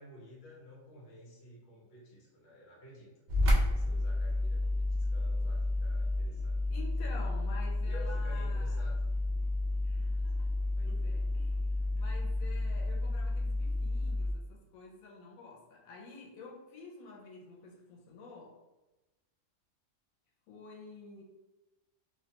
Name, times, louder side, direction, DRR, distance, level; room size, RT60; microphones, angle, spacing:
voice 1, 0.0-3.2 3.6-6.5 7.8-9.0 10.8-11.7 11.9-12.0, equal, 55° left, -3 dB, 0.9 m, -53 dB
sound 1, 3.3-14.3, left 2 dB, 75° right, 0.4 m, -31 dB
voice 2, 6.7-8.9 9.8-11.6 11.9-18.5 20.5-21.2, left 3 dB, 85° left, -2 dB, 1.0 m, -50 dB
2.5 x 2.2 x 2.8 m, 1.1 s
omnidirectional pair, 1.4 m